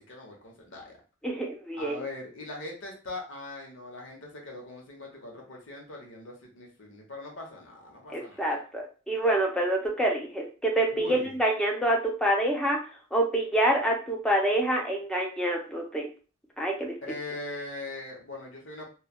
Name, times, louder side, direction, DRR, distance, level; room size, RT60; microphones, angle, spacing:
voice 1, 0.1-1.0 1.8-8.6 10.9-11.3 17.0-18.9, left 2 dB, 70° left, 0 dB, 0.9 m, -41 dB
voice 2, 1.2-2.0 8.1-12.8 13.1-16.1 16.6-16.9, right 1 dB, 5° left, -1 dB, 0.6 m, -27 dB
3.1 x 2.2 x 2.3 m, 0.36 s
head